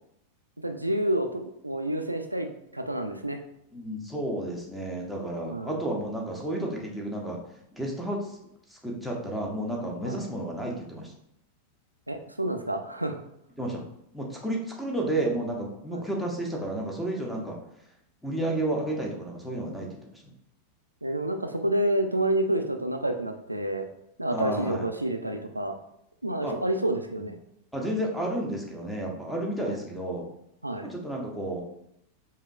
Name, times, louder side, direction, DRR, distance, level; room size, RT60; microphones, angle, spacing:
voice 1, 0.6-2.5 2.7-3.4 5.4-5.8 10.1-10.2 12.1-13.2 15.9-16.0 21.0-23.9 24.2-25.8 26.2-27.4 29.6-29.8 30.6-30.9, right 1 dB, 85° right, 6 dB, 0.3 m, -29 dB
voice 2, 3.7-7.4 7.8-8.3 8.7-11.1 13.6-13.8 14.1-17.6 18.2-19.9 24.3-24.9 26.4-26.5 27.2-27.3 27.7-30.2 30.8-31.6, right 1 dB, ahead, -1 dB, 0.9 m, -31 dB
4.8 x 2.6 x 2.3 m, 0.75 s
figure-of-eight pair, 90°, 0 cm